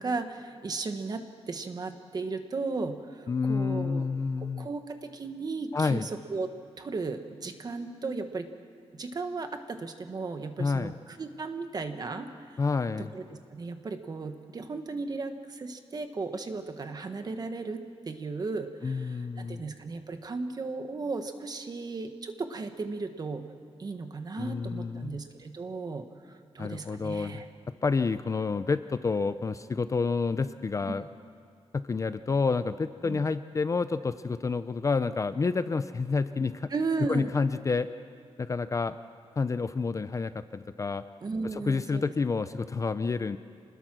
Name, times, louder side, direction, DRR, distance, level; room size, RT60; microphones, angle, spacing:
voice 1, 0.0-4.1 4.4-6.5 6.8-8.5 8.9-12.6 13.0-13.2 13.5-23.5 23.8-27.5 30.8-31.0 33.0-33.2 36.7-37.3 41.2-42.0, right 3 dB, 40° right, 7 dB, 1.4 m, -35 dB
voice 2, 3.3-4.7 5.7-6.1 10.6-10.9 12.6-13.1 18.8-19.6 24.4-25.2 26.6-27.4 27.8-31.0 31.7-36.7 37.1-37.9 38.4-38.9 39.4-41.0 41.5-43.4, left 4 dB, 30° left, 12 dB, 0.5 m, -29 dB
26.5 x 20.5 x 6.1 m, 2.2 s
wide cardioid pair, 170°, 11 cm